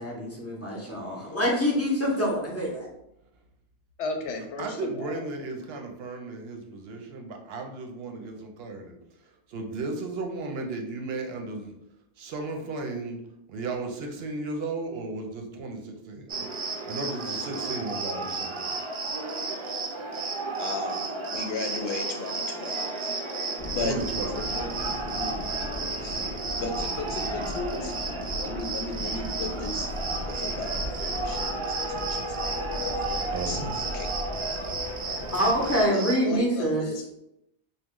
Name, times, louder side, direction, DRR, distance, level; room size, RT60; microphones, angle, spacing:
voice 1, 0.0-2.8 35.3-36.8, equal, 15° left, -3 dB, 0.6 m, -25 dB
voice 2, 4.0-5.2 20.6-22.9 23.7-23.9 24.3-24.7 25.2-25.5 25.8-26.2 26.6-29.9 30.3-33.7 33.9-34.1 35.1-35.3 35.9-37.2, left 4 dB, 90° left, 5 dB, 0.9 m, -36 dB
voice 3, 4.6-9.0 9.5-11.7 12.2-13.2 13.5-18.8 23.4-24.4 27.2-27.3 30.7-30.8 33.3-33.8, right 3 dB, 70° right, 3 dB, 0.7 m, -35 dB
Cricket, 16.3-36.2, right 3 dB, 50° right, 0.3 m, -32 dB
sound 1, 23.6-35.9, left 1 dB, 60° left, 1.1 m, -37 dB
2.9 x 2.2 x 3.6 m, 0.80 s
omnidirectional pair, 1.1 m